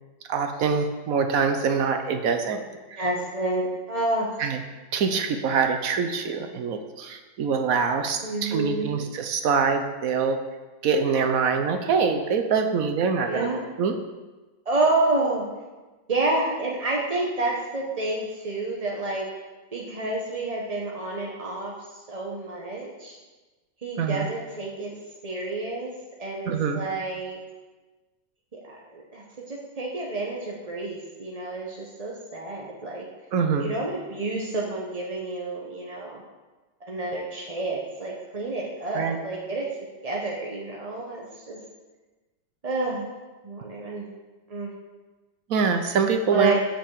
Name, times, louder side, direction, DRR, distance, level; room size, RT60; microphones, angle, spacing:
voice 1, 0.3-2.6 2.9-3.1 4.4-4.6 4.9-10.4 10.8-13.5 13.8-13.9 24.0-24.3 26.5-26.8 33.3-33.7 38.9-39.2 45.5-46.6, right 5 dB, 65° right, 6 dB, 0.8 m, -24 dB
voice 2, 3.0-4.3 8.2-9.1 13.3-13.6 14.7-15.5 16.1-19.3 19.7-23.2 23.8-24.9 25.2-25.9 26.2-27.4 28.5-33.1 33.6-36.2 36.9-39.7 40.0-41.6 42.6-43.1 43.4-44.1 44.5-44.7 46.3-46.6, right 2 dB, 35° right, -3 dB, 0.6 m, -29 dB
6.9 x 5.9 x 7.3 m, 1.2 s
omnidirectional pair, 2.2 m